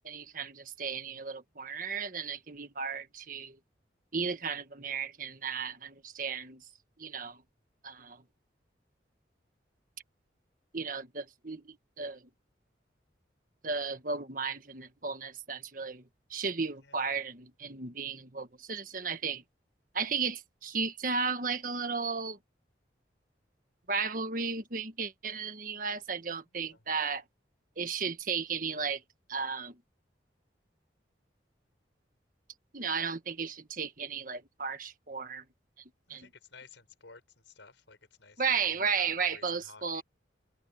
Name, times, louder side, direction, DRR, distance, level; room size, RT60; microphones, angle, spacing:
voice 1, 0.0-3.6 4.1-6.6 7.0-7.4 7.8-8.2 10.7-12.2 13.6-16.0 16.3-19.4 19.9-22.4 23.9-27.2 27.8-29.0 29.3-29.8 32.7-35.4 36.1-36.3 38.4-40.0, right 5 dB, 45° right, 1.5 m, -34 dB
voice 2, 26.5-26.8 36.1-40.0, left 4 dB, 80° left, 5.3 m, -55 dB
head